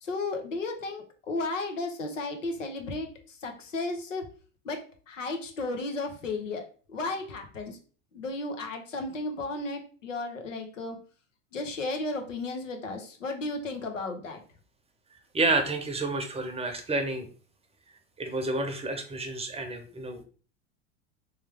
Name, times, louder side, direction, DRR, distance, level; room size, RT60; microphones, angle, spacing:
voice 1, 0.0-4.2 4.6-4.8 5.1-6.6 6.9-7.8 8.1-11.0 11.5-14.4, left 2 dB, 85° left, 5 dB, 1.1 m, -34 dB
voice 2, 15.3-17.3 18.2-20.2, right 2 dB, 15° right, 5 dB, 0.8 m, -29 dB
3.5 x 3.1 x 3.4 m, 0.39 s
hypercardioid pair, 90°, 37 cm